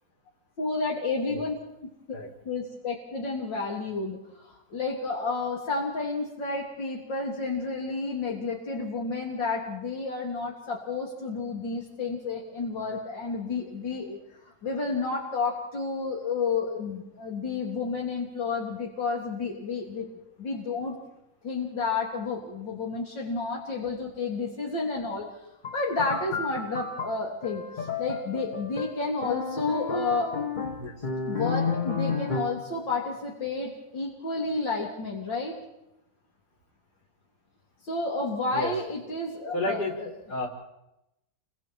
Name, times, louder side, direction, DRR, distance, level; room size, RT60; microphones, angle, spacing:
voice 1, 0.6-1.9 2.5-14.2 14.6-20.1 20.4-20.9 21.4-25.3 25.7-30.3 31.3-35.6 37.9-40.1, left 3 dB, 80° left, -2 dB, 3.7 m, -31 dB
sound 1, 25.6-32.7, left 5 dB, 30° left, 1.2 m, -32 dB
voice 2, 39.5-40.0 40.3-40.5, left 2 dB, 60° left, 1 dB, 4.9 m, -30 dB
30.0 x 24.0 x 4.6 m, 0.86 s
omnidirectional pair, 2.0 m